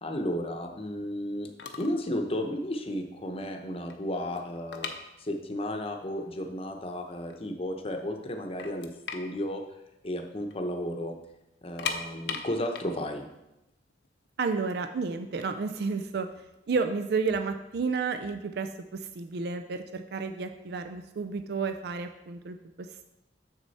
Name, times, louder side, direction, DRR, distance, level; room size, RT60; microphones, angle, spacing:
voice 1, 0.0-1.5 1.8-4.9 5.2-9.6 10.0-11.2 11.6-13.3, left 1 dB, 35° left, 4 dB, 0.8 m, -33 dB
sound 1, 1.3-1.4 1.6-2.0 2.3-2.5 3.1-3.2 3.4-5.7 6.0-6.1 6.7-6.8 7.1-7.9 8.2-8.3 8.6-10.6 10.9-11.0 11.6-14.5 15.2-16.9, left 5 dB, 70° left, 0.7 m, -38 dB
voice 2, 14.4-16.3 16.7-23.0, right 4 dB, 60° right, 8 dB, 0.4 m, -31 dB
7.4 x 6.4 x 4.1 m, 0.91 s
head